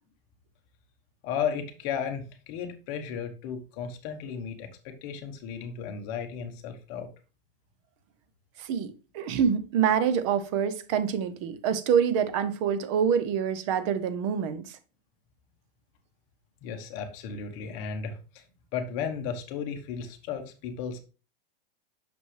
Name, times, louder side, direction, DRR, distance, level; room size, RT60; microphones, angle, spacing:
voice 1, 1.2-7.1 16.6-18.4 18.7-21.0, left 7 dB, 35° left, 1.0 m, -34 dB
voice 2, 8.6-14.8, right 7 dB, 30° right, 0.6 m, -26 dB
6.1 x 5.4 x 3.1 m
supercardioid pair, 165°, 29 cm